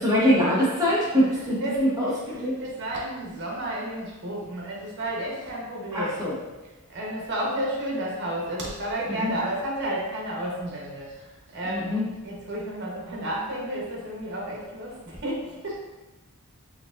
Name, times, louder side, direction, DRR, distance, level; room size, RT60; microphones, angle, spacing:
voice 1, 0.0-2.5 5.9-6.3 9.2-9.3 11.6-12.0, equal, 15° right, -7 dB, 1.0 m, -23 dB
voice 2, 1.3-6.2 6.9-12.0 12.2-15.8, right 1 dB, 50° right, -3 dB, 1.0 m, -32 dB
4.7 x 2.8 x 2.5 m, 1.1 s
head